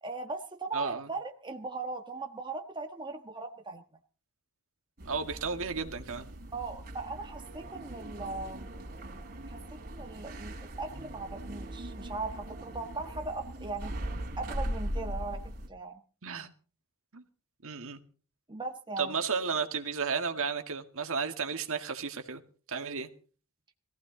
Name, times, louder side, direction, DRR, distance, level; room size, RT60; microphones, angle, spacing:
voice 1, 0.0-3.8 6.5-8.7 9.5-13.9 14.4-15.4 15.7-16.0 18.5-19.1, right 3 dB, 20° right, 5 dB, 1.3 m, -39 dB
voice 2, 0.7-1.1 5.1-6.3 16.2-16.5 17.1-17.2 17.6-18.0 19.0-22.4 22.7-23.1, right 5 dB, 65° right, 6 dB, 1.9 m, -33 dB
sound 1, 5.0-15.7, right 1 dB, 45° right, 3.3 m, -40 dB
21.0 x 15.0 x 3.9 m, 0.39 s
head